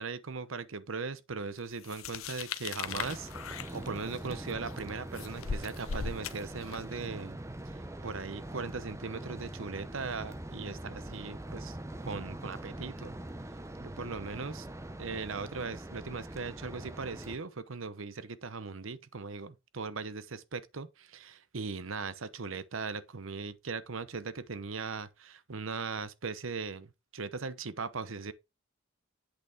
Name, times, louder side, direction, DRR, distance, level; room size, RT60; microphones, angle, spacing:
voice 1, 0.0-3.3 3.7-7.4 8.0-11.8 12.0-13.2 13.8-14.7 15.0-28.3, right 4 dB, 70° right, 0.9 m, -39 dB
sound 1, 1.8-7.0, left 6 dB, 85° left, 0.7 m, -39 dB
sound 2, 2.8-17.4, right 1 dB, 15° right, 0.7 m, -43 dB
8.3 x 6.6 x 3.5 m
head